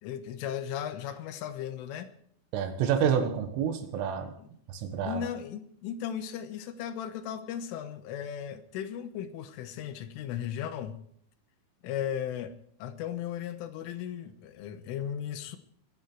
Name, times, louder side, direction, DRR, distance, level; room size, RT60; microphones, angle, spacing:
voice 1, 0.0-2.1 4.4-4.5 5.0-11.0 11.8-15.6, left 9 dB, 80° left, 9 dB, 3.6 m, -36 dB
voice 2, 2.5-4.3 4.7-5.3, right 8 dB, 80° right, 8 dB, 4.1 m, -28 dB
23.5 x 11.0 x 4.7 m, 0.62 s
omnidirectional pair, 5.8 m